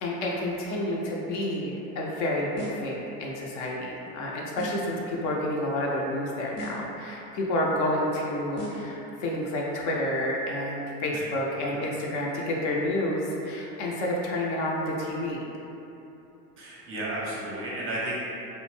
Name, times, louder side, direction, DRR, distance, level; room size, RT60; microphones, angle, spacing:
voice 1, 0.0-15.5, left 1 dB, 50° left, -2 dB, 0.5 m, -29 dB
sound 1, 2.6-3.0 4.6-5.0 6.6-7.0 8.6-9.0, equal, 90° left, 0.8 m, -38 dB
voice 2, 16.6-18.2, right 1 dB, 30° right, -5 dB, 0.6 m, -33 dB
2.4 x 2.1 x 3.2 m, 3.0 s
hypercardioid pair, 80°, 47 cm